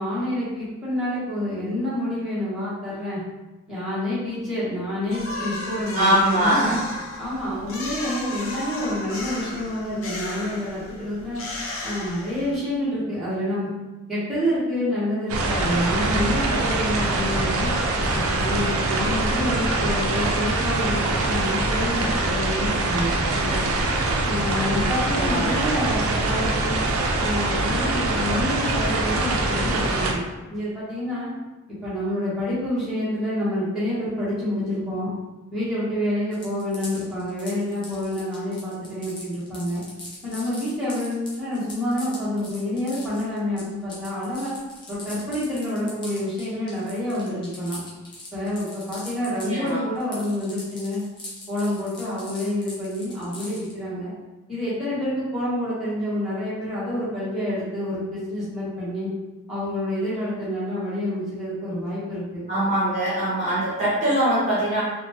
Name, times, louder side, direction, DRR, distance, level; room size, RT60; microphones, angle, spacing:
voice 1, 0.0-3.2 3.7-6.8 7.2-11.4 11.8-13.7 14.1-17.7 18.1-23.7 24.2-26.8 27.2-30.2 30.5-31.3 31.8-35.1 35.5-39.8 40.2-44.5 44.9-47.8 48.3-51.0 51.5-54.1 54.5-59.1 59.5-62.5, left 1 dB, ahead, -12 dB, 1.1 m, -28 dB
sound 1, 5.1-12.7, left 2 dB, 75° left, 0.6 m, -34 dB
voice 2, 5.9-6.8 24.8-25.9 49.5-49.8 62.5-64.8, right 1 dB, 30° right, -9 dB, 1.0 m, -23 dB
sound 2, 15.3-30.1, right 2 dB, 85° right, 0.5 m, -24 dB
sound 3, 36.3-49.7 50.0-53.7, left 1 dB, 20° left, 0.6 m, -41 dB
3.8 x 2.2 x 2.9 m, 1.1 s
head